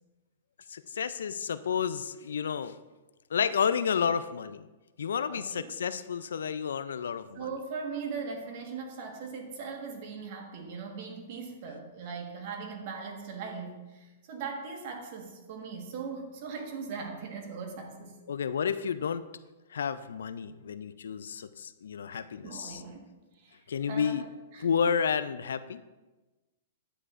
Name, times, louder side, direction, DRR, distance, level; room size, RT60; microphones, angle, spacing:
voice 1, 0.7-2.8 3.3-4.7 5.0-7.5 18.3-19.2 19.7-22.8 23.7-24.2 24.6-25.8, left 7 dB, 85° left, 13 dB, 0.3 m, -31 dB
voice 2, 5.3-5.7 7.3-18.2 22.1-22.2 22.4-23.1 23.4-23.5 23.9-24.7, right 5 dB, 55° right, 3 dB, 1.4 m, -39 dB
9.8 x 8.1 x 2.5 m, 1.2 s
hypercardioid pair, 130°, 0 cm